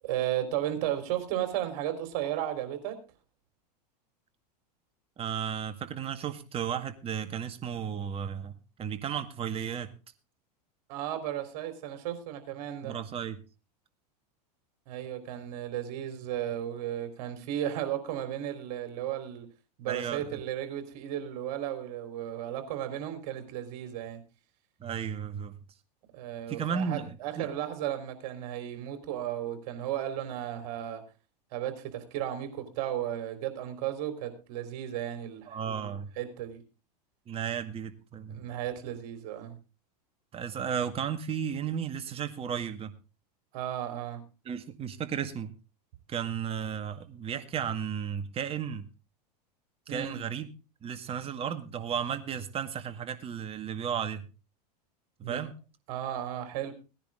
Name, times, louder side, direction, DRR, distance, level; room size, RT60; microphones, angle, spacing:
voice 1, 0.0-3.0 10.9-13.0 14.9-19.5 19.8-24.2 26.1-31.0 31.5-36.6 38.3-39.6 43.5-44.2 49.9-50.2 55.2-55.4 55.9-56.7, right 11 dB, 60° right, 8 dB, 4.0 m, -34 dB
voice 2, 5.2-9.9 12.8-13.4 19.9-20.4 24.8-25.6 26.5-27.5 35.5-36.1 37.3-38.4 40.3-42.9 44.5-45.5 46.1-48.9 49.9-50.5 50.8-54.2 55.2-55.5, right 8 dB, 30° right, 8 dB, 1.9 m, -34 dB
17.5 x 10.5 x 3.8 m, 0.32 s
hypercardioid pair, 115°, 21 cm